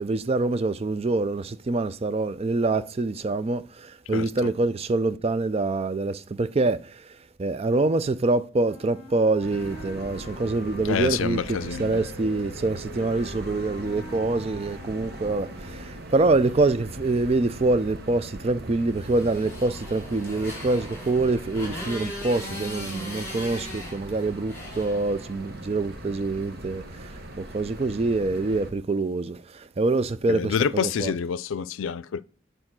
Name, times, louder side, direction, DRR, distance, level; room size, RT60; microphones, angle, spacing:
voice 1, 0.0-7.1 7.4-31.1, right 3 dB, 30° right, 0.4 m, -25 dB
voice 2, 4.1-4.5 10.8-12.0 30.3-32.2, left 7 dB, 80° left, 0.4 m, -27 dB
Wind instrument woodwind instrument, 8.6-16.0, equal, 30° left, 1.0 m, -44 dB
sound 1, 9.4-28.7, right 1 dB, 50° right, 1.1 m, -40 dB
Motorcycle, 18.9-25.6, left 1 dB, 15° left, 3.5 m, -39 dB
8.9 x 3.9 x 6.0 m
head